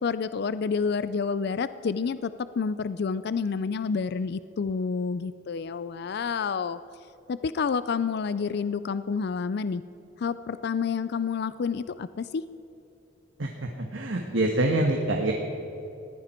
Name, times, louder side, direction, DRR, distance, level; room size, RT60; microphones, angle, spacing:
voice 1, 0.0-6.8 7.3-9.8 10.2-12.4, left 5 dB, 55° left, 15 dB, 0.4 m, -29 dB
voice 2, 13.4-15.3, right 1 dB, 80° right, 2 dB, 1.4 m, -26 dB
20.5 x 15.0 x 4.4 m, 2.9 s
head